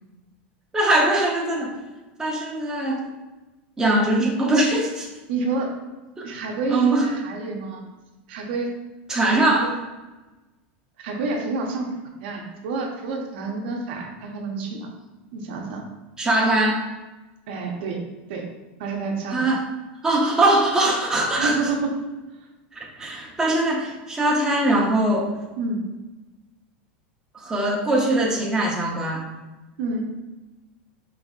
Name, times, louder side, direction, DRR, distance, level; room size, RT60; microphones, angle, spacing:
voice 1, 0.7-1.7 2.2-3.0 3.8-5.1 6.2-6.3 6.7-7.1 9.1-9.7 16.2-16.8 19.3-19.6 20.0-21.6 22.8-25.3 27.3-29.2, right 1 dB, 10° right, -2 dB, 0.7 m, -21 dB
voice 2, 5.3-5.7 6.2-7.8 8.3-8.7 9.5-9.7 11.0-11.9 12.2-14.9 15.3-15.8 17.5-18.0 18.3-18.5 18.8-19.5 21.3-22.0 25.6-25.8 29.8-30.0, right 3 dB, 70° right, 2 dB, 0.8 m, -28 dB
5.2 x 3.4 x 2.4 m, 1.1 s
supercardioid pair, 135°, 6 cm